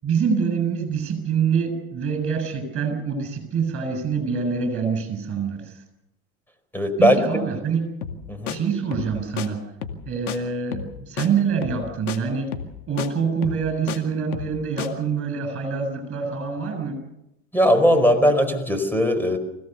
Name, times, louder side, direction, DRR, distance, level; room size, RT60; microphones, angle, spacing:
voice 1, 0.0-5.8 7.0-7.9 8.5-9.7 10.1-12.5 12.9-17.0, right 6 dB, 30° right, 7 dB, 7.4 m, -25 dB
voice 2, 6.7-7.2 8.3-8.6 17.5-19.4, equal, 5° left, 9 dB, 4.8 m, -19 dB
sound 1, 8.0-8.2 8.5-8.6 8.9-9.1 9.4-9.5 9.8-10.0 10.3-10.4 10.7-10.9 11.2-11.3 11.6-11.8 12.1-12.2 12.5-12.7 13.0-13.1 13.4-14.0 14.3-14.5 14.8-14.9, left 9 dB, 85° left, 2.3 m, -31 dB
25.0 x 17.0 x 6.9 m, 0.85 s
hypercardioid pair, 95°, 43 cm